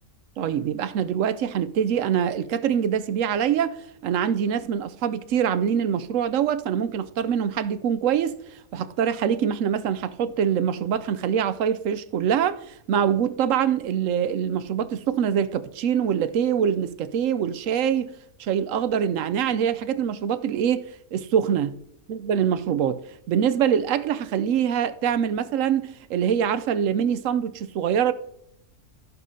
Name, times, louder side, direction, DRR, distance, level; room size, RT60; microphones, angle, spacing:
voice 1, 0.4-18.1 18.4-21.7 22.1-23.0 23.3-28.1, right 8 dB, 70° right, 0.9 m, -24 dB
15.0 x 7.0 x 2.7 m
omnidirectional pair, 1.5 m